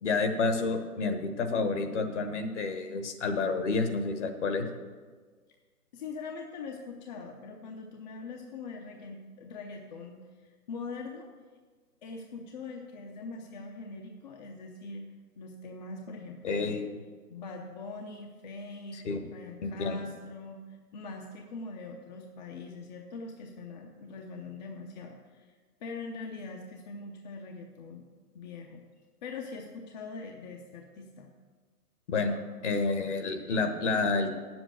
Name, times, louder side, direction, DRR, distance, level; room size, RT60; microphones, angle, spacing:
voice 1, 0.0-4.7 16.4-16.9 18.9-19.2 19.6-20.0 32.1-34.3, left 3 dB, 50° left, 6 dB, 1.3 m, -29 dB
voice 2, 5.9-11.3 12.0-15.0 15.4-16.8 17.3-19.0 19.3-28.0 28.3-28.8 29.2-31.3, left 3 dB, 30° left, 1 dB, 0.7 m, -42 dB
9.3 x 7.9 x 6.5 m, 1.5 s
hypercardioid pair, 140°, 46 cm